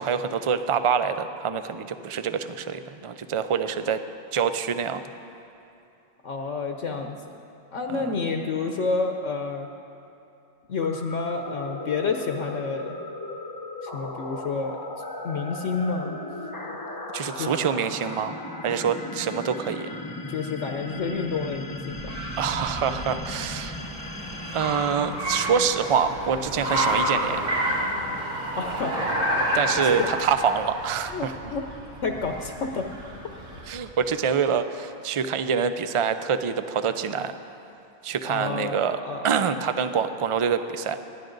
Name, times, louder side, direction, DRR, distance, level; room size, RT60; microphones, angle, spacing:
voice 1, 0.0-4.0 4.3-5.0 7.9-8.1 17.1-18.4 18.6-19.9 22.4-23.8 24.5-27.4 29.5-31.3 33.7-37.4 38.0-41.0, right 7 dB, 45° right, 10 dB, 0.4 m, -26 dB
voice 2, 6.2-7.2 7.7-9.7 10.7-13.0 13.8-14.8 15.2-16.2 16.7-16.8 17.3-17.6 20.3-22.1 28.6-28.9 29.8-30.1 31.1-31.6 32.0-32.9 38.2-39.4, left 4 dB, 70° left, 4 dB, 1.2 m, -29 dB
sound 1, 10.8-25.9, left 2 dB, 20° left, 0.9 m, -37 dB
Car, 20.9-33.8, right 1 dB, 80° right, 2.8 m, -30 dB
28.0 x 11.0 x 3.9 m, 2.8 s
omnidirectional pair, 1.3 m